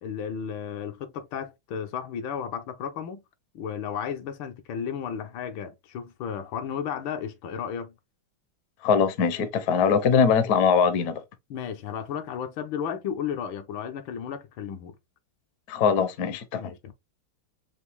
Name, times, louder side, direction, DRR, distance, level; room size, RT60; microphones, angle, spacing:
voice 1, 0.0-3.2 3.5-7.9 11.5-15.0 16.6-16.9, left 8 dB, 80° left, 1.5 m, -33 dB
voice 2, 8.8-11.2 15.7-16.6, left 6 dB, 65° left, 1.1 m, -22 dB
5.0 x 2.6 x 3.3 m
omnidirectional pair, 2.2 m